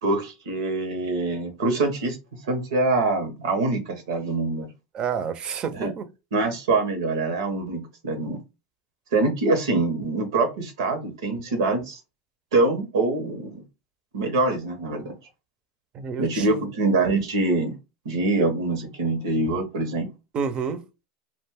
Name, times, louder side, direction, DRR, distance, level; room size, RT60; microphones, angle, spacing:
voice 1, 0.0-2.2 2.4-4.7 5.7-5.9 6.3-8.4 9.1-12.0 12.5-13.6 14.1-15.1 16.2-17.7 18.0-20.1, right 3 dB, 85° right, 0.8 m, -24 dB
voice 2, 4.9-6.1 15.9-16.7 20.3-20.8, right 6 dB, 40° right, 0.5 m, -29 dB
2.5 x 2.1 x 3.4 m
hypercardioid pair, 100°, 2 cm